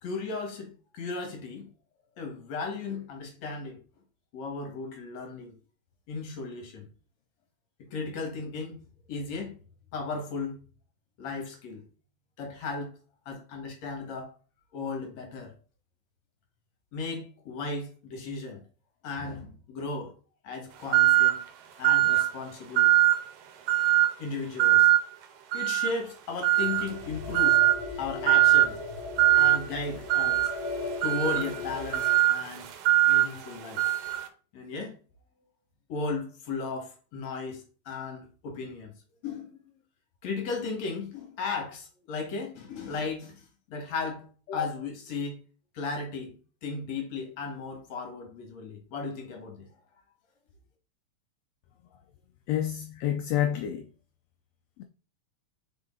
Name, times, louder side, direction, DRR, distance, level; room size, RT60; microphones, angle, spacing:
voice 1, 0.0-1.7 2.2-3.8 4.3-5.5 6.1-6.9 7.8-8.7 9.1-9.6 9.9-10.6 11.2-11.8 12.4-12.9 13.3-14.3 14.7-15.5 16.9-18.6 19.0-20.1 20.4-21.4 21.8-22.9 24.2-24.9 25.5-27.6 28.0-28.8 29.4-30.5 31.0-32.7 33.1-33.8 34.5-35.0 35.9-38.9 39.2-39.6 40.2-45.4 45.7-46.3 46.6-49.7, left 4 dB, 65° left, 2.7 m, -35 dB
sound 1, 20.9-21.4 21.8-22.3 22.8-23.2 23.7-24.1 24.6-25.0 25.5-26.0 26.4-26.9 27.3-27.8 28.3-28.7 29.2-29.6 30.1-34.3, right 14 dB, 75° right, 2.2 m, -22 dB
sound 2, 26.5-32.1, left 3 dB, 40° left, 0.8 m, -38 dB
voice 2, 52.5-53.9, left 11 dB, 85° left, 1.4 m, -28 dB
6.4 x 4.6 x 3.7 m
omnidirectional pair, 3.4 m